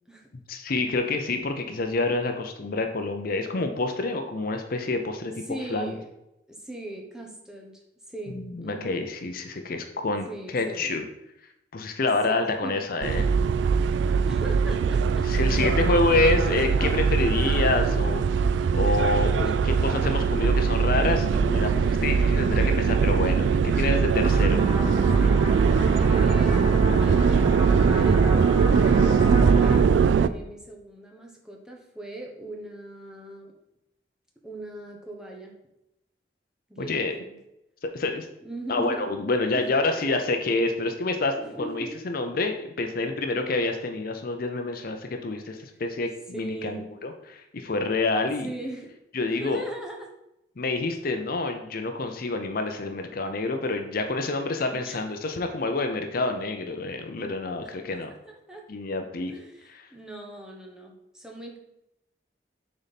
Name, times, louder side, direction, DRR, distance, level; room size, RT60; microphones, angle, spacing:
voice 1, 0.3-5.3 5.7-6.0 8.3-11.0 11.7-13.3 15.3-18.2 18.7-24.6 36.8-37.1 37.8-38.3 38.7-48.5 49.1-49.6 50.6-58.1 58.7-59.3, left 3 dB, 55° left, 5 dB, 0.6 m, -27 dB
voice 2, 5.5-6.0 6.5-7.8 8.1-9.0 10.3-10.9 12.3-12.8 14.0-15.3 15.5-15.7 16.3-17.0 17.5-18.0 19.4-20.5 25.1-25.4 26.0-29.2 29.5-29.9 30.2-33.5 34.4-35.6 36.7-37.4 38.4-39.2 39.5-40.1 41.4-42.0 45.7-45.8 46.3-46.9 48.4-48.9 49.4-50.1 54.9-55.0 58.3-58.6 59.3-61.6, right 1 dB, 5° right, -1 dB, 1.0 m, -40 dB
sound 1, 13.0-30.3, right 5 dB, 80° right, 0.3 m, -21 dB
sound 2, 24.1-29.8, right 1 dB, 20° right, 1.3 m, -30 dB
6.5 x 4.2 x 4.1 m, 0.87 s
head